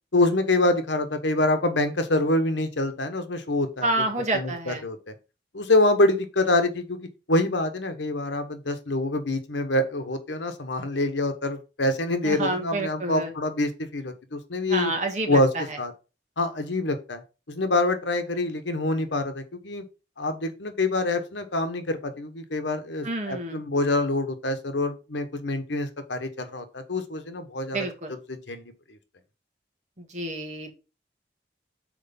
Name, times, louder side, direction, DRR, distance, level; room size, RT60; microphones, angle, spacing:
voice 1, 0.1-3.9 4.3-5.1 5.5-14.9 15.3-15.5 15.8-15.9 16.4-17.2 17.5-19.8 20.2-27.9 28.3-28.7, left 2 dB, 85° left, 8 dB, 1.2 m, -26 dB
voice 2, 3.8-4.9 12.2-13.3 14.7-15.8 23.0-23.6 27.7-28.1 30.0-30.8, right 2 dB, 40° right, 3 dB, 1.9 m, -29 dB
6.5 x 4.5 x 5.4 m, 0.30 s
head